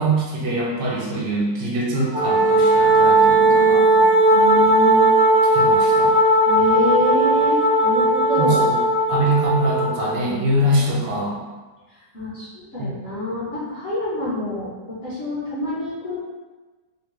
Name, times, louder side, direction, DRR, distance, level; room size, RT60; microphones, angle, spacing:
voice 1, 0.0-3.9 5.5-6.1 8.3-8.8 9.1-11.4 12.8-12.9, right 1 dB, 85° right, -3 dB, 1.3 m, -23 dB
Wind instrument woodwind instrument, 2.1-10.1, right 2 dB, 30° right, 0.3 m, -17 dB
voice 2, 3.4-5.1 6.0-6.1 6.5-8.6 10.7-11.2 12.1-16.2, left 2 dB, 50° left, -9 dB, 0.8 m, -27 dB
3.6 x 2.1 x 3.0 m, 1.3 s
omnidirectional pair, 1.9 m